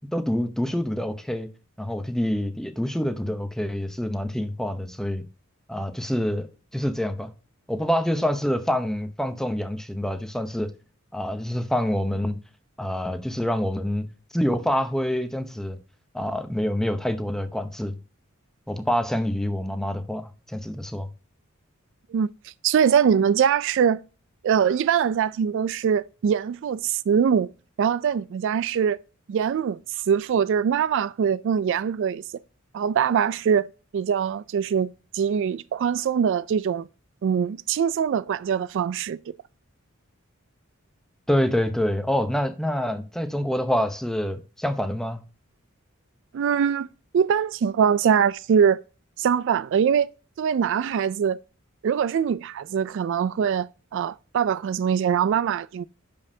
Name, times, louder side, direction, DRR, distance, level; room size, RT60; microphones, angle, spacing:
voice 1, 0.1-1.5 1.8-5.2 5.7-6.5 6.7-7.3 7.7-10.7 11.1-12.4 12.8-14.1 14.3-15.8 16.1-17.9 18.7-21.1 41.3-45.2, equal, ahead, 0.7 m, -26 dB
voice 2, 22.1-24.0 24.4-27.5 27.8-29.0 29.3-32.2 32.7-33.7 33.9-36.9 37.2-39.2 46.3-46.9 47.1-48.8 49.2-50.1 50.4-51.4 51.8-55.9, right 7 dB, 60° right, 0.3 m, -23 dB
10.5 x 5.3 x 2.7 m
head